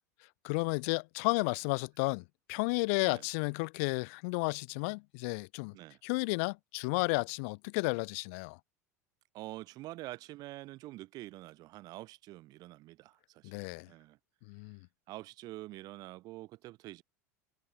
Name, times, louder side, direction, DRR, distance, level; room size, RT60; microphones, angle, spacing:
voice 1, 0.4-5.7 6.0-8.6 13.4-13.9 14.5-14.8, left 32 dB, 55° left, 0.6 m, -32 dB
voice 2, 9.3-14.2 15.1-17.0, right 18 dB, 45° right, 2.9 m, -46 dB
figure-of-eight pair, 80°, 9 cm